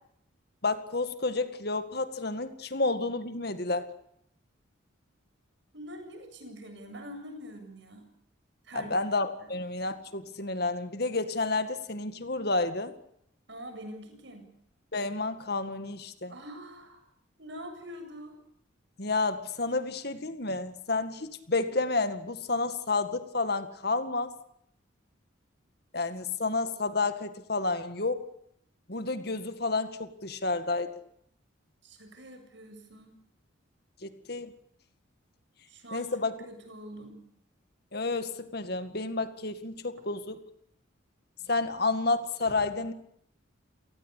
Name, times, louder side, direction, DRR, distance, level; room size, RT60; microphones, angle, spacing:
voice 1, 0.6-3.9 8.7-12.9 14.9-16.3 19.0-24.3 25.9-28.3 28.9-30.9 34.0-34.5 35.9-36.3 37.9-40.4 41.5-42.9, left 3 dB, 50° left, 10 dB, 2.0 m, -30 dB
voice 2, 5.7-8.1 8.6-9.0 9.4-9.5 13.5-14.4 16.3-17.0 17.4-18.4 31.8-33.2 35.7-37.2, equal, 65° right, 6 dB, 7.7 m, -44 dB
29.0 x 19.0 x 8.5 m, 0.71 s
head